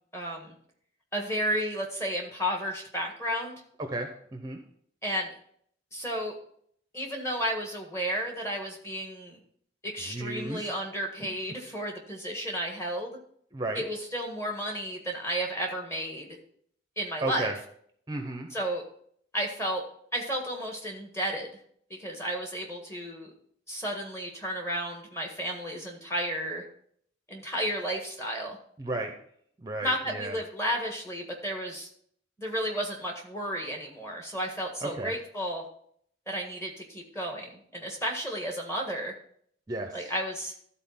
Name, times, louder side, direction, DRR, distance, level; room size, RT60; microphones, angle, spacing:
voice 1, 0.1-0.6 1.1-3.5 5.0-5.3 5.9-6.3 6.9-9.4 9.8-13.2 13.7-16.3 17.0-17.5 18.5-18.8 19.3-19.8 20.1-21.5 21.9-23.3 23.7-26.6 27.3-28.6 29.8-31.9 32.4-35.6 36.3-39.1 39.9-40.5, equal, 15° left, 1 dB, 1.5 m, -32 dB
voice 2, 3.8-4.6 10.1-10.7 11.2-11.3 13.5-13.9 17.2-17.5 18.1-18.5 28.8-29.1 29.6-30.4 34.8-35.1 39.7-40.1, right 2 dB, 20° right, 4 dB, 0.7 m, -34 dB
12.5 x 4.2 x 5.7 m, 0.64 s
head